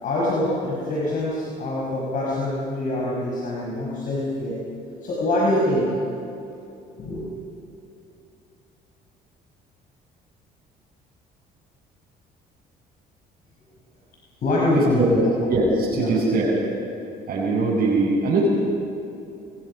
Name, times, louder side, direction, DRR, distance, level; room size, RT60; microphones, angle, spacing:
voice 1, 0.0-4.5 5.0-6.0 6.9-7.3 14.4-15.2 15.9-16.1, left 1 dB, 55° left, -5 dB, 5.8 m, -24 dB
voice 2, 15.5-16.6 17.3-18.5, right 3 dB, 60° right, -7 dB, 6.1 m, -21 dB
27.5 x 21.5 x 5.6 m, 2.8 s
cardioid pair, 110°, 17 cm